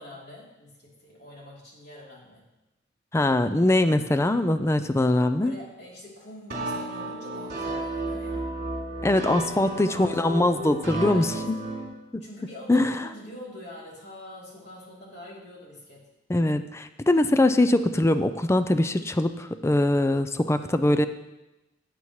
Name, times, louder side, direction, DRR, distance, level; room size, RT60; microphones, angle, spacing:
voice 1, 0.0-2.5 5.4-8.5 9.3-10.4 10.9-11.4 12.2-16.1, left 1 dB, 60° left, -4 dB, 3.3 m, -44 dB
voice 2, 3.1-5.5 9.0-11.6 12.1-12.2 12.7-13.1 16.3-21.1, left 1 dB, 15° left, 10 dB, 0.4 m, -22 dB
sound 1, 6.5-11.8, right 1 dB, 55° right, 3.3 m, -32 dB
16.5 x 8.4 x 3.1 m, 1.0 s
head